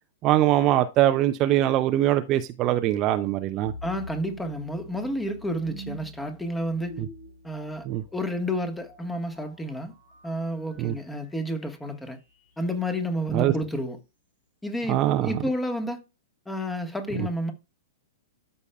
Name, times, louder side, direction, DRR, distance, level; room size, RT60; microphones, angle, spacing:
voice 1, 0.2-3.7 7.9-8.0 10.8-10.9 13.3-13.5 14.9-15.3 17.2-17.3, right 13 dB, 35° right, 0.6 m, -22 dB
sound 1, 3.6-12.7, equal, 80° left, 4.5 m, -46 dB
voice 2, 3.8-7.0 7.4-9.9 10.2-12.2 12.6-14.0 14.6-16.0 16.5-17.5, equal, 5° left, 1.4 m, -30 dB
13.0 x 5.5 x 2.3 m
figure-of-eight pair, 105°, 0 cm